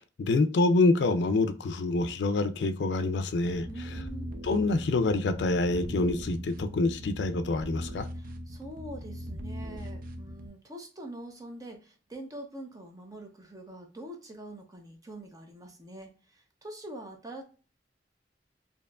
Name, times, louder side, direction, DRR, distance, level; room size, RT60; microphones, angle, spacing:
voice 1, 0.2-3.7 4.4-8.1, left 2 dB, 75° left, 0.4 m, -26 dB
sound 1, 3.4-10.5, equal, 55° right, 0.5 m, -39 dB
voice 2, 3.7-4.3 8.1-17.4, right 1 dB, 20° right, 0.8 m, -44 dB
4.5 x 2.9 x 2.4 m
head